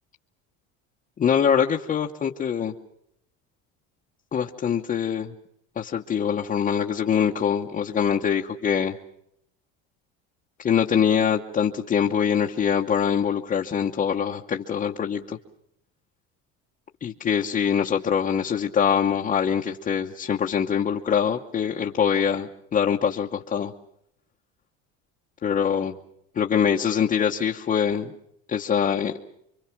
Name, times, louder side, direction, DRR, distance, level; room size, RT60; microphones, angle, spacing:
voice 1, 1.2-2.7 4.3-5.3 5.8-9.0 10.6-15.4 17.0-23.7 25.4-26.0 26.3-28.1 28.5-29.1, left 7 dB, 25° left, 0 dB, 1.0 m, -24 dB
27.0 x 24.0 x 6.0 m, 0.73 s
cardioid pair, 160°, 32 cm